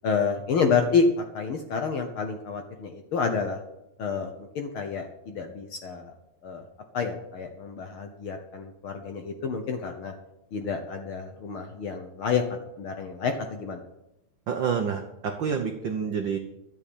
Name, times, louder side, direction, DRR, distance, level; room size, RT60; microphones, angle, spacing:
voice 1, 0.0-3.6 4.0-6.1 6.4-6.6 6.9-10.1 10.5-12.4 12.8-13.8, left 5 dB, 65° left, 5 dB, 1.4 m, -28 dB
voice 2, 14.5-16.4, right 6 dB, 85° right, 5 dB, 1.0 m, -28 dB
12.5 x 7.1 x 8.6 m, 0.88 s
omnidirectional pair, 3.5 m